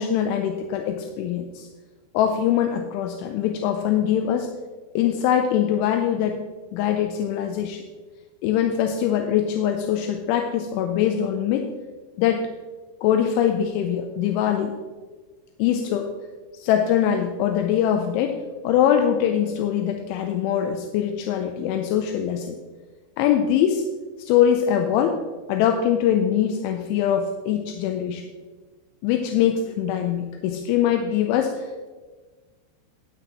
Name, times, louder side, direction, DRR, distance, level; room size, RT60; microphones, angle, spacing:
voice 1, 0.0-1.7 2.1-4.5 5.0-6.4 6.7-7.8 8.4-11.7 12.2-12.5 13.0-14.7 15.6-16.1 16.6-22.6 23.2-23.9 24.2-25.2 25.5-28.3 29.0-31.9, left 9 dB, 85° left, 5 dB, 3.0 m, -23 dB
12.0 x 10.5 x 3.0 m, 1.4 s
omnidirectional pair, 5.5 m